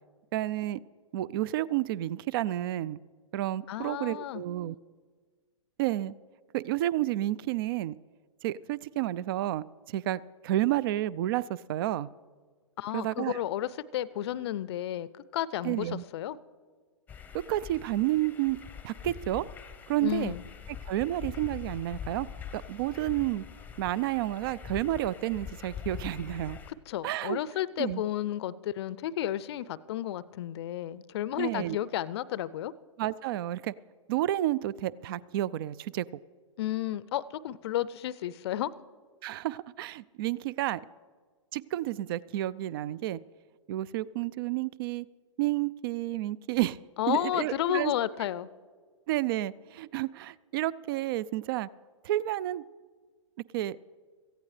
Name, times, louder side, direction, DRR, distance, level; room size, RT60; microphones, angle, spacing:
voice 1, 0.3-0.8 1.1-3.0 3.3-4.8 5.8-6.2 6.5-8.0 8.4-12.1 12.9-13.4 15.6-16.0 17.5-18.6 18.8-19.5 19.9-20.3 20.9-22.3 22.5-23.4 23.8-26.6 27.0-27.4 27.8-28.0 31.4-31.8 33.0-33.7 34.1-36.1 39.2-40.8 41.5-43.2 43.7-45.1 45.4-46.8 47.1-47.9 49.1-51.7 52.0-52.6 53.5-53.8, right 14 dB, 45° right, 22 dB, 0.4 m, -30 dB
voice 2, 3.7-4.4 12.8-16.4 20.0-20.4 26.7-32.7 36.6-38.7 47.0-48.5, left 12 dB, 55° left, 19 dB, 0.5 m, -32 dB
sound 1, 17.1-26.7, left 8 dB, 10° left, 0.8 m, -43 dB
17.5 x 15.0 x 3.3 m, 1.5 s
hypercardioid pair, 115°, 17 cm